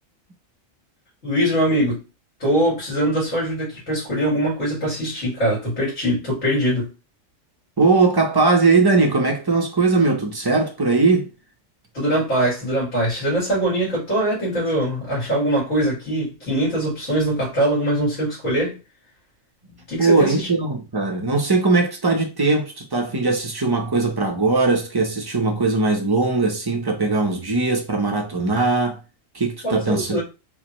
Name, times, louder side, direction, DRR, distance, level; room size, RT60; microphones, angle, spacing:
voice 1, 1.2-2.0 2.4-6.9 11.9-18.8 19.6-20.5 29.6-30.2, right 1 dB, 75° left, 2.8 m, -22 dB
voice 2, 7.8-11.3 20.0-29.0 29.3-30.2, right 3 dB, 25° right, 0.6 m, -20 dB
4.8 x 2.2 x 3.0 m
omnidirectional pair, 1.4 m